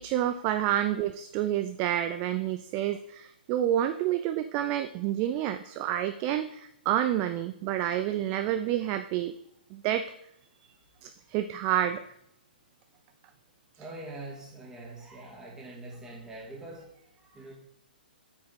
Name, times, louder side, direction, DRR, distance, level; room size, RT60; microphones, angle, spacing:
voice 1, 0.0-9.3 9.7-10.1 11.0-12.0, right 11 dB, 25° right, 10 dB, 0.3 m, -29 dB
voice 2, 13.8-17.5, right 2 dB, 10° right, -3 dB, 2.1 m, -44 dB
8.3 x 5.2 x 4.1 m, 0.75 s
figure-of-eight pair, 120°, 5 cm